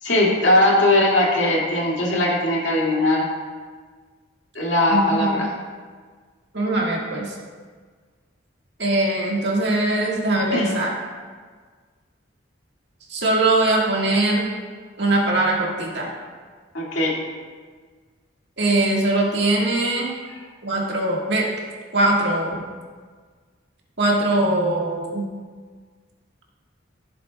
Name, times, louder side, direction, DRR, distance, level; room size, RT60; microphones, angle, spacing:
voice 1, 0.0-3.3 4.5-5.5 10.5-10.7 16.7-17.3, left 1 dB, 75° left, -4 dB, 2.2 m, -19 dB
voice 2, 4.9-5.3 6.5-7.4 8.8-10.9 13.1-14.5 15.0-16.1 18.6-20.1 20.6-21.5 21.9-22.5 24.0-25.2, right 2 dB, 60° right, -2 dB, 1.8 m, -21 dB
14.5 x 7.6 x 2.3 m, 1.5 s
head